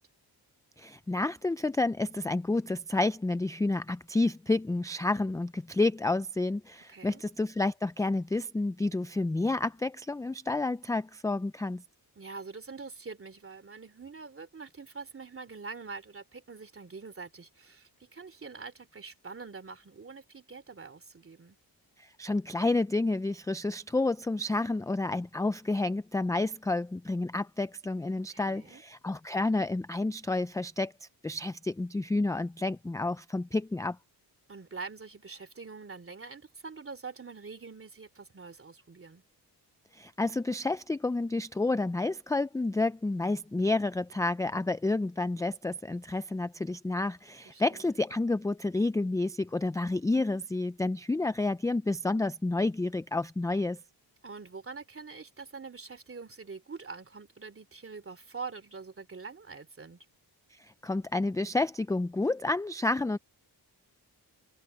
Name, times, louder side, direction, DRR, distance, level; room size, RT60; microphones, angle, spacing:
voice 1, 0.8-11.8 22.0-34.0 39.9-53.8 60.5-63.2, left 2 dB, 10° left, 0.4 m, -30 dB
voice 2, 6.9-7.2 12.2-21.6 28.2-28.8 34.5-39.2 47.4-48.0 54.2-60.0, right 4 dB, 35° right, 2.9 m, -44 dB
cardioid pair, 95°, 40 cm